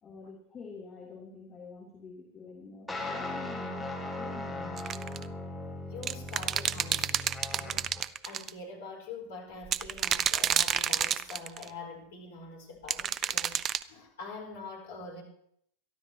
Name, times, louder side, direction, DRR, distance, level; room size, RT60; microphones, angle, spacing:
voice 1, 0.0-4.8, left 4 dB, 25° left, -3 dB, 3.0 m, -47 dB
sound 1, 2.9-8.0, left 2 dB, 5° left, 2.4 m, -38 dB
sound 2, 4.8-5.2 6.0-8.5 9.7-11.7 12.9-13.8, right 9 dB, 30° right, 0.4 m, -29 dB
voice 2, 5.8-7.9 8.2-15.2, left 3 dB, 55° left, 1 dB, 4.6 m, -44 dB
22.5 x 13.0 x 2.9 m, 0.67 s
figure-of-eight pair, 90°, 0 cm